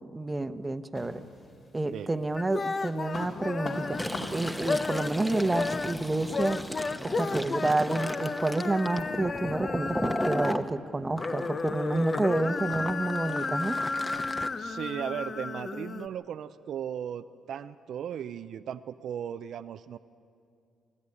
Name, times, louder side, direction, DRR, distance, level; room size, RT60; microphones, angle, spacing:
voice 1, 0.1-1.2 1.7-4.0 4.3-6.6 7.0-13.8, right 2 dB, 20° right, 9 dB, 0.9 m, -29 dB
sound 1, 0.9-1.9 2.3-7.5, left 2 dB, 55° left, 4.2 m, -42 dB
sound 2, 2.4-4.2 4.6-5.2 5.5-10.7 11.0-16.1, left 4 dB, 35° left, 0.8 m, -33 dB
Fill (with liquid), 3.8-10.7 11.2-14.5, left 1 dB, 10° left, 1.1 m, -36 dB
voice 2, 14.6-20.0, right 9 dB, 70° right, 10 dB, 0.5 m, -36 dB
26.0 x 13.5 x 9.8 m, 2.4 s
cardioid pair, 90°, 0 cm